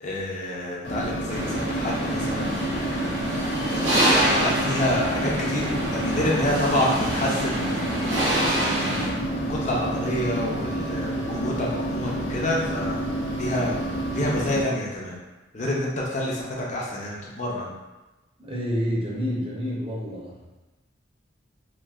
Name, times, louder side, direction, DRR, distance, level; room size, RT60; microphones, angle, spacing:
voice 1, 0.0-2.6 3.7-9.1 9.5-13.0 13.3-13.7 14.1-15.2 15.5-17.7, left 1 dB, 40° left, -3 dB, 0.6 m, -28 dB
sound 1, 0.8-14.6, right 1 dB, 85° left, 0.7 m, -29 dB
sound 2, 1.3-9.1, right 1 dB, 85° right, 0.8 m, -26 dB
voice 2, 18.4-20.5, equal, 30° right, -6 dB, 0.7 m, -29 dB
3.0 x 2.5 x 2.4 m, 1.1 s
head